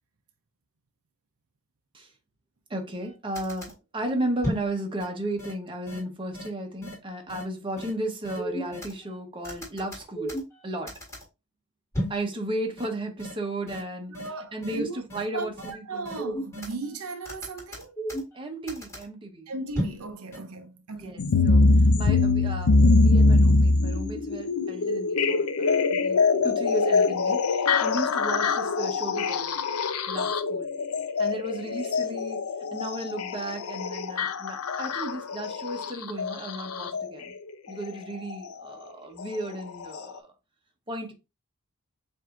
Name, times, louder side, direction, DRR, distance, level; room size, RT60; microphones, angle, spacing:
voice 1, 2.7-10.4 10.6-10.9 12.1-14.2 14.5-16.1 18.3-19.5 20.9-21.7 21.9-29.6 30.1-30.7 31.2-32.4 32.7-37.3 37.7-40.3 40.9-41.1, right 1 dB, 25° right, 0.9 m, -34 dB
sound 1, 3.0-3.1 3.4-3.7 4.4-4.7 5.0-5.1 5.4-5.5 5.9-6.0 6.3-6.5 6.8-6.9 7.3-7.4 7.8-7.9 8.2-8.9 9.4-10.6 10.9-11.2 11.9-12.2 12.8-12.9 13.2-13.3 13.7-13.8 14.1-14.3 14.6-14.7 15.1-15.2 15.6-15.7 16.1-16.7 17.3-18.4 18.7-19.0 19.7-20.0 20.3-20.4, equal, 15° left, 1.8 m, -33 dB
voice 2, 14.1-15.0 15.3-17.9 19.5-21.3, right 3 dB, 70° right, 0.6 m, -36 dB
sound 2, 21.2-37.1 38.3-38.4 39.2-39.3 39.9-40.0, left 3 dB, 75° left, 0.5 m, -23 dB
7.4 x 2.7 x 2.4 m
head